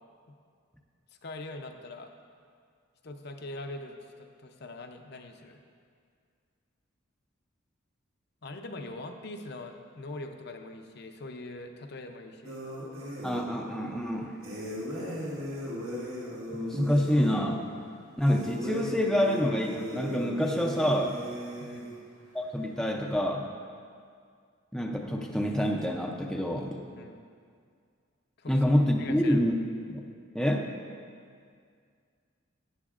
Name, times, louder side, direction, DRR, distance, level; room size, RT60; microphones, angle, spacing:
voice 1, 1.2-2.1 3.0-5.6 8.4-12.6 21.6-21.9 27.0-27.2 28.4-28.5 29.0-29.4, left 2 dB, 55° left, 5 dB, 0.6 m, -42 dB
sound 1, 12.4-13.5 14.4-17.4 18.2-21.9, equal, 85° right, 1.9 m, -37 dB
voice 2, 13.2-14.4 16.5-17.7 18.2-21.2 22.3-23.5 24.7-26.8 28.5-29.6 29.9-30.1 30.3-30.7, equal, 5° left, 1 dB, 0.4 m, -27 dB
13.0 x 9.2 x 2.5 m, 2.2 s
head